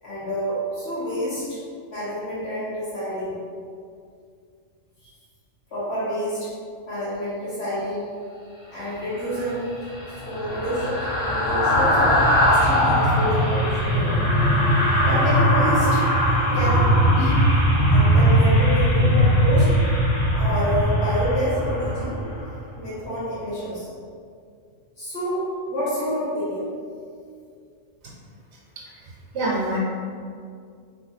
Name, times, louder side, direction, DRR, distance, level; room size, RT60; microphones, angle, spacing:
voice 1, 0.0-1.6 1.9-3.4 5.7-6.5 6.9-8.1 8.7-9.6 10.1-14.3 15.0-16.1 16.5-17.4 17.9-19.7 20.3-22.2 22.7-23.9 25.0-26.7, equal, 55° left, -10 dB, 2.0 m, -28 dB
sound 1, 9.2-22.6 22.9-23.1, equal, 85° left, 1.4 m, -20 dB
voice 2, 29.0-29.8, right 2 dB, 65° right, -5 dB, 1.0 m, -26 dB
3.3 x 3.3 x 4.1 m, 2.3 s
omnidirectional pair, 1.3 m